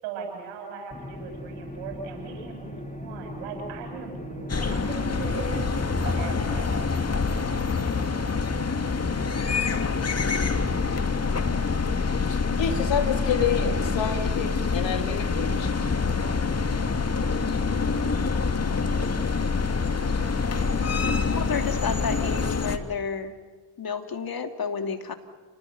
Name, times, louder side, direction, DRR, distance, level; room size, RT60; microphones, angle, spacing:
voice 1, 0.0-5.7 6.0-6.8, right 6 dB, 80° right, 2 dB, 7.9 m, -38 dB
sound 1, 0.9-7.3, left 1 dB, 15° left, 3.0 m, -39 dB
sound 2, 4.5-22.8, left 4 dB, 30° left, 2.5 m, -26 dB
voice 2, 12.3-15.8, left 7 dB, 60° left, 5 dB, 3.6 m, -29 dB
voice 3, 21.3-23.3 23.8-25.1, left 6 dB, 45° left, 6 dB, 3.0 m, -30 dB
29.5 x 19.5 x 9.5 m, 1.4 s
hypercardioid pair, 50°, 49 cm